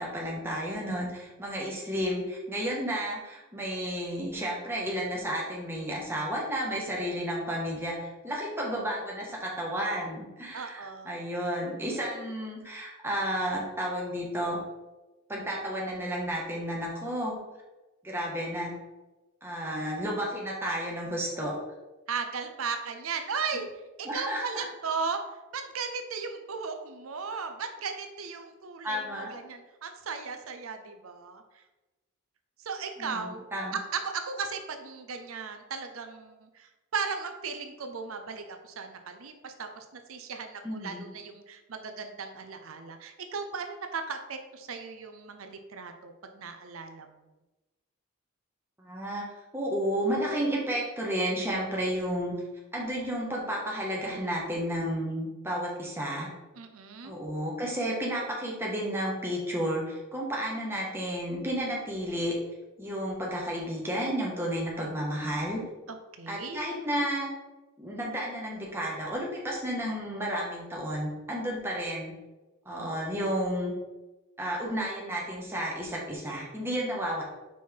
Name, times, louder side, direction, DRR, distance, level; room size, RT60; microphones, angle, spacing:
voice 1, 0.0-14.6 15.3-17.4 18.0-18.7 19.4-21.5 24.0-24.7 28.8-29.3 33.0-33.8 40.6-41.0 48.8-49.2 49.5-52.3 52.7-56.3 57.0-62.3 62.8-65.6 66.3-67.3 67.8-72.1 72.6-73.7 74.4-77.2, equal, 10° right, -3 dB, 1.4 m, -32 dB
voice 2, 10.5-11.2 22.1-23.7 24.0-25.2 25.5-31.4 32.6-33.4 33.7-36.7 36.9-47.1 56.6-57.2 65.9-66.6 72.7-73.0, right 5 dB, 85° right, 6 dB, 0.6 m, -36 dB
5.6 x 4.5 x 4.5 m, 1.1 s
head